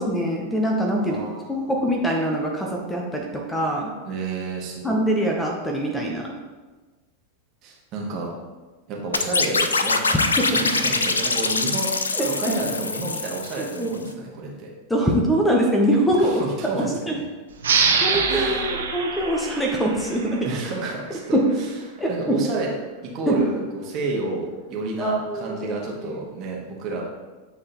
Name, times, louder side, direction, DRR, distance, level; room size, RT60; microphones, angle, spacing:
voice 1, 0.0-1.2 1.5-3.9 4.8-6.4 10.5-10.6 12.1-12.5 13.8-14.1 14.9-16.4 16.7-17.2 17.7-20.5 21.3-21.6 22.0-22.5 23.3-23.5 25.0-26.2, right 1 dB, 5° left, 0 dB, 0.8 m, -23 dB
voice 2, 1.0-1.8 4.0-5.0 7.6-8.3 8.9-14.7 16.2-17.2 18.1-18.7 20.4-21.7 22.1-22.7 23.0-27.0, right 3 dB, 35° right, -2 dB, 1.4 m, -30 dB
sound 1, 9.1-13.9, left 3 dB, 75° left, 0.4 m, -24 dB
sound 2, 17.6-20.9, right 5 dB, 65° right, 0.8 m, -24 dB
8.8 x 3.7 x 3.0 m, 1.2 s
figure-of-eight pair, 90°, 0 cm